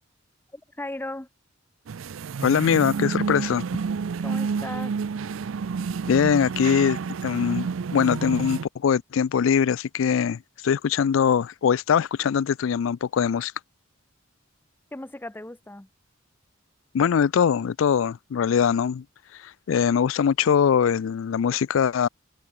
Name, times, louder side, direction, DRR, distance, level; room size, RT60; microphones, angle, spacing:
voice 1, 0.5-1.3 4.2-5.0 14.9-15.9, left 1 dB, 10° left, 0.8 m, -36 dB
sound 1, 1.9-8.7, right 5 dB, 75° right, 0.4 m, -29 dB
voice 2, 2.4-3.7 6.1-13.5 16.9-19.0 19.7-22.1, left 7 dB, 75° left, 0.4 m, -22 dB
head